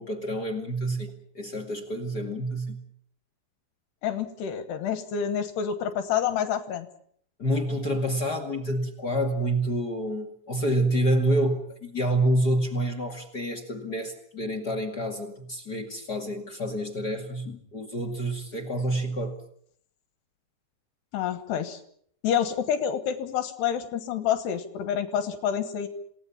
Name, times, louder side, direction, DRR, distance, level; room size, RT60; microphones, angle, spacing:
voice 1, 0.0-2.8 7.4-19.4, right 1 dB, 35° left, 8 dB, 1.8 m, -28 dB
voice 2, 4.0-6.9 21.1-21.8 22.2-25.9, left 8 dB, 75° left, 10 dB, 3.4 m, -28 dB
28.0 x 18.5 x 7.2 m, 0.65 s
omnidirectional pair, 4.9 m